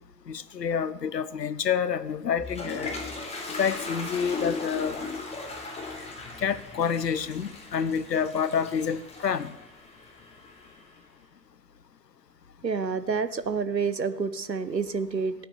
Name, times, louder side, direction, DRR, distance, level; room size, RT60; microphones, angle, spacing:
voice 1, 0.3-2.9 3.6-5.0 6.4-9.5, left 7 dB, 75° left, 16 dB, 1.0 m, -28 dB
Toilet flush, 2.1-11.0, left 3 dB, 15° left, 3.6 m, -38 dB
voice 2, 12.6-15.3, right 5 dB, 90° right, 13 dB, 1.0 m, -28 dB
17.0 x 9.2 x 6.9 m, 0.96 s
figure-of-eight pair, 95°, 49 cm